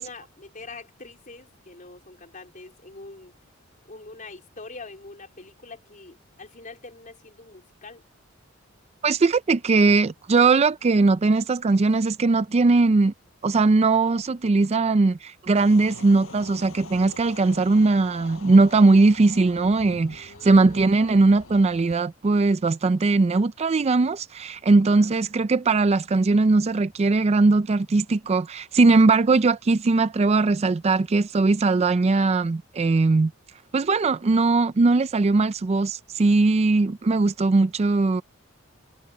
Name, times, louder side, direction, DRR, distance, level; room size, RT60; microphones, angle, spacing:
voice 1, 0.0-3.3 3.9-8.0 20.0-21.2 24.9-25.1, left 3 dB, 40° left, 3.9 m, -44 dB
voice 2, 9.0-13.1 13.4-33.3 33.7-38.2, right 3 dB, 30° right, 0.4 m, -20 dB
sound 1, 15.5-21.9, left 3 dB, 75° left, 7.5 m, -44 dB
head